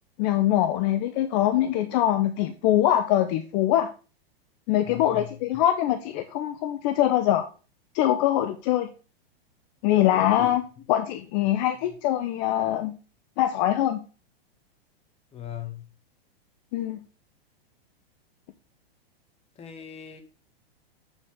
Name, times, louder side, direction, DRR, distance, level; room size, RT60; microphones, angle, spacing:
voice 1, 0.2-3.9 4.7-7.5 7.9-8.9 9.8-10.6 10.9-12.9 13.4-14.0 16.7-17.0, left 12 dB, 45° left, 9 dB, 0.9 m, -23 dB
voice 2, 4.8-5.6 10.1-10.8 11.8-11.9 15.3-15.9 19.5-20.2, left 9 dB, 20° left, 7 dB, 1.6 m, -40 dB
8.4 x 7.4 x 3.6 m, 0.34 s
hypercardioid pair, 135°, 31 cm